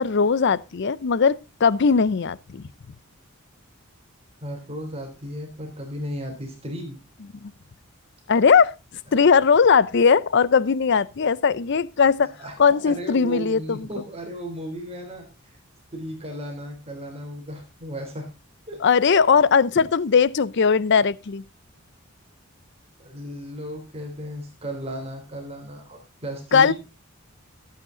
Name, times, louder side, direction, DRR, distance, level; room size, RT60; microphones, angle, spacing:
voice 1, 0.0-2.6 7.4-7.5 8.3-8.7 9.1-12.3 12.6-13.9 18.8-21.4 26.5-26.7, left 5 dB, 55° left, 0.5 m, -19 dB
voice 2, 4.4-7.0 12.2-12.6 12.8-15.6 15.9-18.3 18.7-18.8 23.0-26.7, equal, 30° right, 3.4 m, -35 dB
14.0 x 8.5 x 3.8 m
head